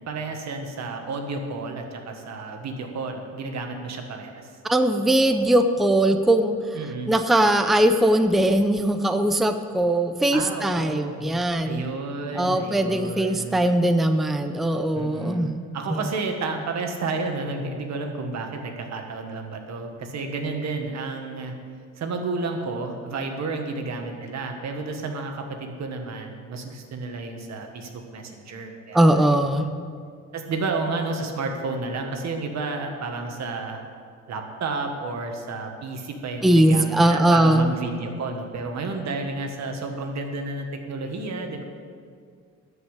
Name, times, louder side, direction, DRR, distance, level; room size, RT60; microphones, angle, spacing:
voice 1, 0.1-4.5 6.7-7.1 10.3-11.2 11.6-13.6 14.9-21.5 22.0-29.6 30.3-33.8 34.3-41.6, right 3 dB, 65° right, 4 dB, 1.6 m, -31 dB
voice 2, 4.6-6.6 7.1-11.8 12.3-15.5 15.9-16.0 28.9-29.7 36.4-37.7, right 1 dB, ahead, 8 dB, 0.6 m, -20 dB
12.5 x 5.5 x 8.3 m, 2.1 s
cardioid pair, 90°, 30 cm